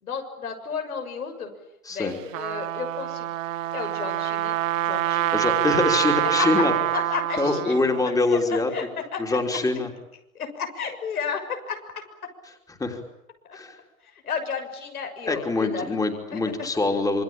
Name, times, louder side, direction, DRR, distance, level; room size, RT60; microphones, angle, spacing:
voice 1, 0.0-1.5 1.9-3.3 3.7-5.6 6.2-6.7 6.9-7.8 8.3-8.4 8.7-8.8 9.1-9.4 10.3-11.8 13.4-13.6 14.2-16.0 16.3-16.4, left 6 dB, 85° left, 5 dB, 6.7 m, -32 dB
Trumpet, 2.1-8.0, right 14 dB, 60° right, 1.2 m, -26 dB
voice 2, 5.3-6.7 7.4-8.7 9.2-9.9 12.8-13.0 13.5-13.8 15.3-17.2, left 2 dB, 10° left, 4 dB, 3.2 m, -24 dB
27.0 x 23.5 x 8.9 m, 0.83 s
hypercardioid pair, 125°, 43 cm